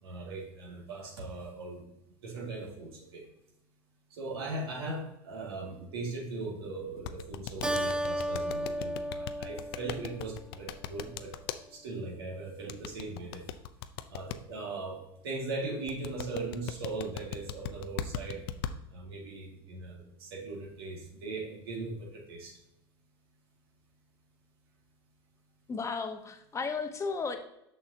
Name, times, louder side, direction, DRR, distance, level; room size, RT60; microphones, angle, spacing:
voice 1, 0.0-1.8 2.2-3.2 4.1-11.3 11.7-13.4 14.1-15.0 15.2-18.4 18.9-22.5, right 3 dB, 90° right, -1 dB, 2.0 m, -39 dB
sound 1, 7.0-11.6 12.7-14.4 15.9-18.7, left 10 dB, 80° left, 0.5 m, -37 dB
Keyboard (musical), 7.6-10.5, equal, 10° right, 0.4 m, -34 dB
voice 2, 25.7-27.4, left 4 dB, 25° left, 6 dB, 1.0 m, -34 dB
6.6 x 5.9 x 2.7 m, 0.83 s
supercardioid pair, 100°, 13 cm